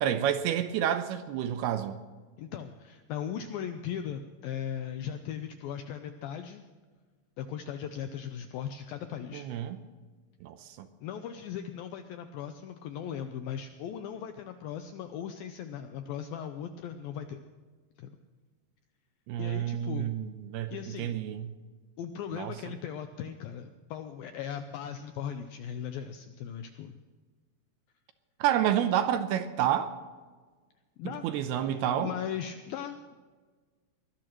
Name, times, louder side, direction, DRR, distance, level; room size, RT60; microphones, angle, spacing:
voice 1, 0.0-2.0 9.3-9.8 10.4-10.9 19.3-20.7 21.0-21.5 22.3-22.5 28.4-29.9 31.0-32.1, right 10 dB, 80° right, 2.5 m, -29 dB
voice 2, 2.4-6.6 7.4-9.5 11.0-17.4 18.0-18.1 19.4-20.1 20.7-21.2 22.0-26.9 31.0-33.1, left 8 dB, 85° left, 2.0 m, -38 dB
23.0 x 19.0 x 3.0 m
omnidirectional pair, 5.0 m